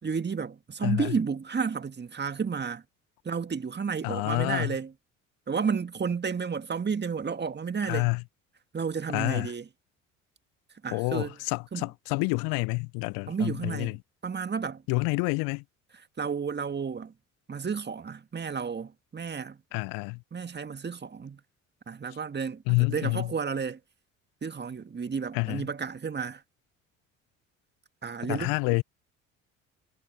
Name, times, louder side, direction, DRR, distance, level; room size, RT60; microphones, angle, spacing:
voice 1, 0.0-2.8 3.2-4.9 5.5-8.1 8.7-9.7 10.8-11.4 11.7-11.9 13.3-14.0 14.2-14.8 16.2-17.1 17.5-19.6 20.3-21.4 21.9-23.8 24.4-26.4 28.0-28.7, right 6 dB, 25° right, 1.9 m, -32 dB
voice 2, 0.8-1.1 4.0-4.7 7.8-8.2 9.1-9.5 10.9-14.0 14.9-15.6 19.7-20.2 22.7-23.3 25.3-25.7 28.2-28.8, left 31 dB, 60° left, 0.6 m, -28 dB
figure-of-eight pair, 55°, 40 cm